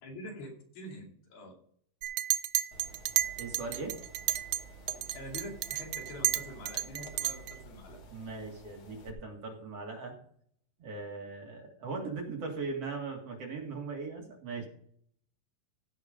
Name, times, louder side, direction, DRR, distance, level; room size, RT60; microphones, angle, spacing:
voice 1, 0.0-1.5 5.0-8.0, left 1 dB, 85° left, -1 dB, 4.6 m, -45 dB
Chink clink, 2.0-4.6 4.9-7.6, right 13 dB, 85° right, 1.7 m, -32 dB
sound 1, 2.7-9.1, right 2 dB, 50° left, 1.7 m, -51 dB
voice 2, 3.4-4.0 8.1-10.1 10.8-14.7, right 4 dB, 50° right, 0 dB, 2.7 m, -39 dB
15.5 x 5.3 x 5.1 m, 0.63 s
omnidirectional pair, 4.1 m